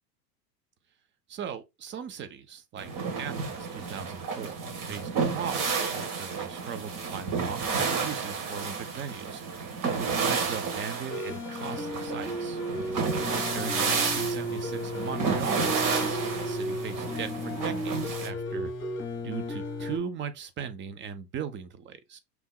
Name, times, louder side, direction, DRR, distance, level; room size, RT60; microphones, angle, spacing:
voice 1, 1.3-2.9 3.2-4.6 4.8-12.6 13.5-18.7 19.2-22.2, right 7 dB, 25° right, 0.6 m, -38 dB
sound 1, 2.8-18.3, right 5 dB, 40° right, 1.5 m, -31 dB
sound 2, 11.1-20.0, left 1 dB, 25° left, 1.2 m, -34 dB
5.3 x 3.0 x 2.2 m
figure-of-eight pair, 80°, 49 cm